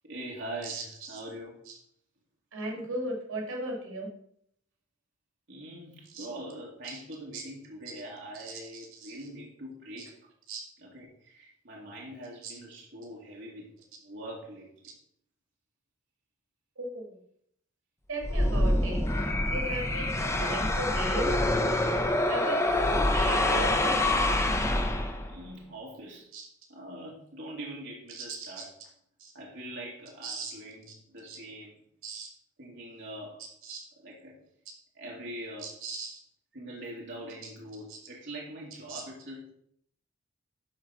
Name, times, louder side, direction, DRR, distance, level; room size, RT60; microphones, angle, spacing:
voice 1, 0.0-1.5 5.5-10.1 10.8-13.7 14.0-14.7 19.2-19.3 25.3-26.3 26.7-28.7 29.3-31.8 32.6-33.4 34.0-34.4 35.0-35.7 36.5-39.5, right 1 dB, 60° right, -4 dB, 2.1 m, -43 dB
voice 2, 0.6-1.2 1.7-1.8 2.5-4.1 6.1-6.3 6.8-7.0 7.3-7.4 8.4-9.2 10.0-10.1 10.5-10.6 12.4-12.5 16.8-17.2 18.1-19.0 19.5-21.3 22.3-24.0 26.3-26.4 28.1-28.6 29.2-29.3 30.2-30.5 31.3-31.4 32.0-32.3 33.6-33.8 35.6-36.2 37.4-37.5 37.9-38.0 38.9-39.0, right 2 dB, 85° right, 0 dB, 2.4 m, -37 dB
sound 1, 18.2-25.4, left 1 dB, 15° left, 0.6 m, -26 dB
11.5 x 3.9 x 5.6 m, 0.69 s
head